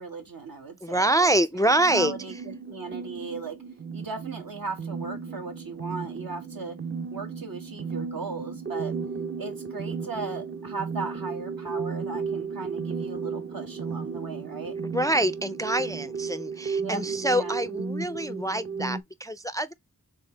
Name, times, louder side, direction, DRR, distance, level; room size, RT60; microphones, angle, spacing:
voice 1, 0.0-3.6 3.9-6.7 7.1-8.9 9.4-14.9 16.8-17.6, right 4 dB, 75° right, 1.5 m, -37 dB
voice 2, 0.8-2.1 14.9-19.7, right 1 dB, 10° left, 0.3 m, -25 dB
sound 1, 1.7-19.0, right 5 dB, 35° right, 0.6 m, -34 dB
4.4 x 3.4 x 3.2 m
wide cardioid pair, 60°, 35 cm